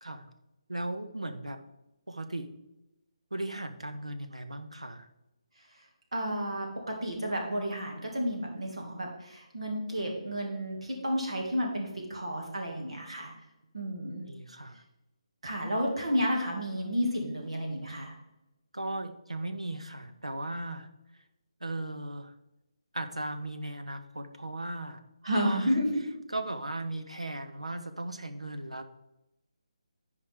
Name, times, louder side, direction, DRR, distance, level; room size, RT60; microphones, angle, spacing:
voice 1, 0.7-1.6 2.1-2.5 3.3-5.1 14.3-14.8 18.7-20.9 21.6-22.3 22.9-25.0 25.4-25.8 26.3-28.8, right 2 dB, 85° right, 8 dB, 0.9 m, -37 dB
voice 2, 6.1-13.3 13.7-14.2 15.4-18.1 25.2-26.0, equal, 70° right, 0 dB, 2.2 m, -31 dB
13.5 x 5.1 x 3.6 m, 0.93 s
figure-of-eight pair, 145°, 3 cm